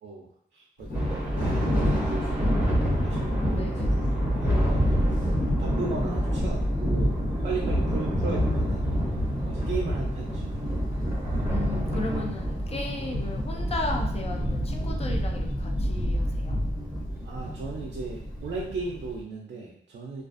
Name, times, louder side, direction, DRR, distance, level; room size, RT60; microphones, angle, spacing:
voice 1, 0.0-8.8 9.5-10.5 17.2-20.2, right 4 dB, 60° right, -2 dB, 0.4 m, -37 dB
Thunder, 0.8-19.2, equal, 80° left, 0.9 m, -30 dB
Thunder 2, 0.9-18.6, equal, 10° right, 0.7 m, -30 dB
voice 2, 3.5-4.0 11.5-16.6, left 2 dB, 30° left, 2 dB, 0.4 m, -35 dB
2.4 x 2.3 x 2.4 m, 0.66 s
wide cardioid pair, 135°, 20 cm